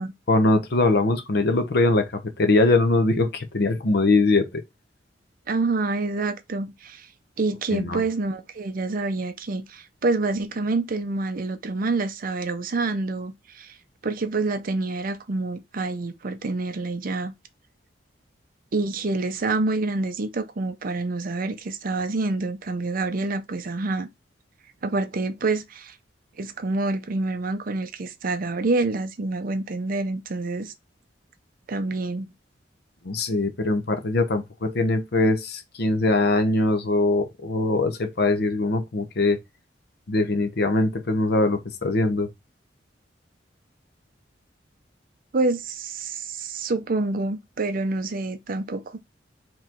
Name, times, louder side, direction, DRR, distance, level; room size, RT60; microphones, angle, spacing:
voice 1, 0.3-4.6 7.7-8.0 33.0-39.4 40.1-42.3, left 2 dB, 60° left, 0.8 m, -22 dB
voice 2, 5.5-7.1 7.4-13.8 14.0-17.3 18.7-24.1 24.8-26.0 26.4-30.7 31.7-32.3 45.3-49.0, right 3 dB, 50° right, 0.6 m, -27 dB
4.6 x 3.1 x 3.7 m
head